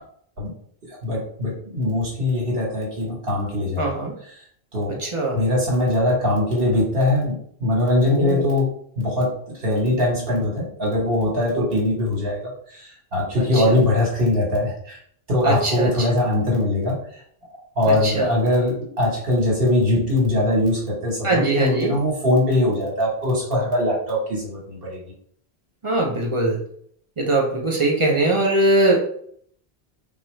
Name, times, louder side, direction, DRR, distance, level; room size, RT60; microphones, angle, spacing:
voice 1, 1.0-4.4 4.7-5.0 5.3-8.7 9.0-9.3 9.6-15.0 15.3-17.0 17.8-25.0, left 1 dB, 65° right, -3 dB, 1.4 m, -21 dB
voice 2, 3.8-4.1 4.9-5.4 8.1-8.5 11.5-11.6 13.4-13.8 15.4-15.9 17.9-18.4 21.2-22.0 25.8-26.6 27.2-29.0, right 2 dB, 35° right, 0 dB, 0.6 m, -21 dB
4.1 x 2.3 x 3.1 m, 0.63 s
omnidirectional pair, 1.1 m